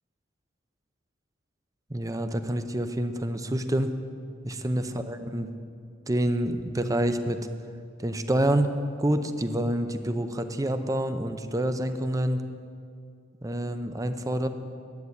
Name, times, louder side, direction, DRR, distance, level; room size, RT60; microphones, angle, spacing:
voice 1, 1.9-4.0 4.4-5.5 6.1-7.4 8.0-8.7 9.0-12.4 13.4-14.5, right 1 dB, 20° right, 8 dB, 0.6 m, -27 dB
11.0 x 8.5 x 9.5 m, 2.3 s
head